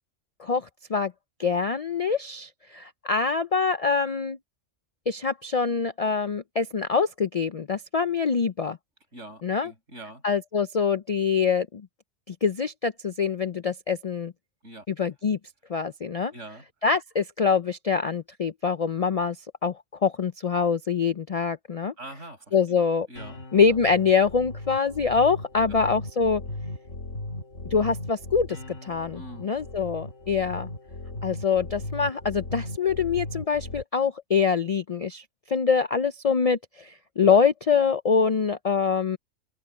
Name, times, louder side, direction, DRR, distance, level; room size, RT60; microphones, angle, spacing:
voice 1, 0.4-1.1 1.4-4.4 5.1-8.8 9.4-9.7 10.2-11.9 12.3-14.3 14.9-15.4 15.7-16.3 16.8-19.4 19.6-21.9 22.5-23.1 23.5-26.4 27.7-30.7 31.2-39.2, left 5 dB, 50° left, 0.4 m, -25 dB
voice 2, 9.1-10.2 14.6-14.9 16.3-16.6 22.0-22.8 23.1-23.4 25.6-25.8 29.1-29.5, right 1 dB, 75° right, 8.4 m, -43 dB
sound 1, 23.2-33.8, left 1 dB, 80° left, 3.0 m, -38 dB
omnidirectional pair, 1.3 m